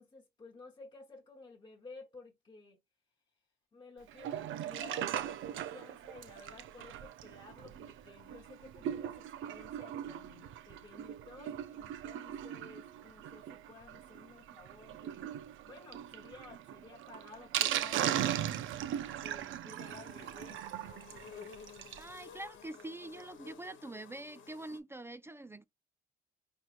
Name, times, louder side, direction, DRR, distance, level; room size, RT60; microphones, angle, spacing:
voice 1, 0.0-2.8 3.7-15.3 15.6-18.4 19.1-20.6, left 3 dB, 25° left, 1.1 m, -54 dB
Sink (filling or washing), 4.1-22.1 22.5-22.6 22.7-22.8 23.2-23.3, right 11 dB, 80° right, 0.5 m, -39 dB
sound 1, 19.8-24.8, left 6 dB, 75° left, 1.1 m, -53 dB
voice 2, 22.0-25.6, right 2 dB, 10° right, 0.4 m, -45 dB
4.2 x 3.1 x 2.4 m
cardioid pair, 90°, 20 cm